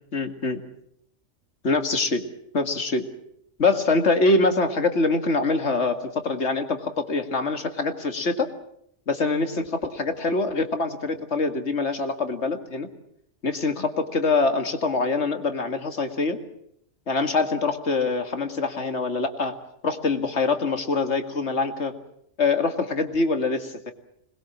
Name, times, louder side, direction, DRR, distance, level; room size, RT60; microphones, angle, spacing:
voice 1, 0.1-0.6 1.6-2.2 2.5-3.1 3.6-8.5 9.1-12.9 13.4-16.4 17.1-19.5 19.8-21.9 22.4-23.9, left 3 dB, 65° left, 7 dB, 2.4 m, -24 dB
26.0 x 21.0 x 7.4 m, 0.73 s
omnidirectional pair, 1.3 m